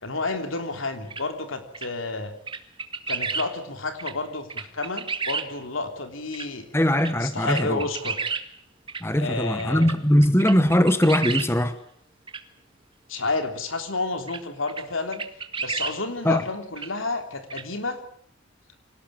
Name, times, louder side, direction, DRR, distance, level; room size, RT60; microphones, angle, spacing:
voice 1, 0.0-2.3 3.1-6.6 7.2-8.4 9.1-9.9 13.1-15.2 15.6-18.0, left 3 dB, 70° left, 7 dB, 3.4 m, -30 dB
sound 1, 1.1-1.2 1.7-1.9 2.5-3.5 4.0-4.1 4.5-5.5 6.3-6.5 7.0-7.1 7.5-8.4 8.9-9.0 9.6-9.9 10.2-11.5 12.3-12.4 14.3-14.4 14.7-14.8 15.1-16.0 16.8-16.9 17.5-17.6, right 5 dB, 25° right, 1.8 m, -30 dB
voice 2, 6.7-7.9 9.0-11.8 16.2-16.4, left 1 dB, 10° left, 11 dB, 1.0 m, -21 dB
25.5 x 18.5 x 8.8 m, 0.65 s
head